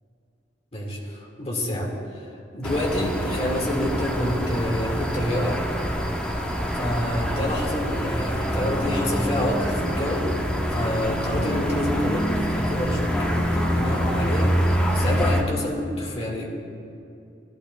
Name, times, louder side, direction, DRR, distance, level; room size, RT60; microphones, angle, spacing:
voice 1, 0.7-2.3 2.5-5.6 6.7-10.4 10.7-16.5, left 1 dB, 35° left, -2 dB, 1.8 m, -28 dB
sound 1, 2.6-15.4, equal, 5° left, 0.8 m, -25 dB
14.5 x 11.5 x 2.2 m, 2.6 s
head